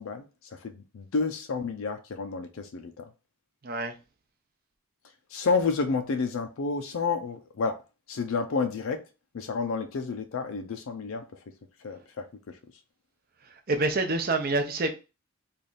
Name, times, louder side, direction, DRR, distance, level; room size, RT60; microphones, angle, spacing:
voice 1, 0.0-3.0 5.3-7.8 8.1-9.0 9.3-11.2 11.8-12.6, left 4 dB, 70° left, 0.4 m, -30 dB
voice 2, 3.6-3.9 13.7-14.9, right 2 dB, 45° right, 0.6 m, -26 dB
3.3 x 2.4 x 3.9 m
head